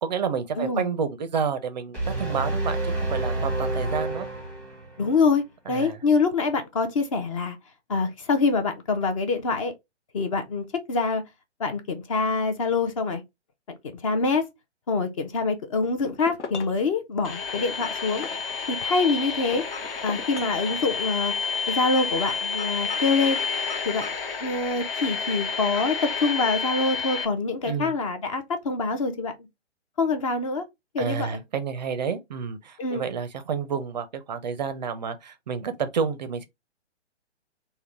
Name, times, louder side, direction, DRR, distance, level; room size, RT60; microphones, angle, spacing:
voice 1, 0.0-4.3 5.7-6.0 27.6-27.9 31.0-36.4, right 6 dB, 40° right, 0.4 m, -29 dB
sound 1, 1.9-5.1, right 2 dB, 5° left, 0.8 m, -28 dB
voice 2, 5.0-7.6 7.9-9.7 10.1-11.2 11.6-13.2 14.0-14.4 14.9-18.3 18.7-19.6 20.0-21.3 21.7-23.4 23.9-24.1 24.4-29.3 30.0-30.6 30.9-31.4 32.8-33.0, left 4 dB, 30° left, 0.5 m, -25 dB
sound 2, 15.8-16.9 17.5-19.1 19.5-20.9, left 4 dB, 80° left, 0.8 m, -40 dB
sound 3, 17.2-27.3, left 5 dB, 50° left, 0.9 m, -30 dB
3.7 x 2.1 x 3.3 m
figure-of-eight pair, 135°, 35 cm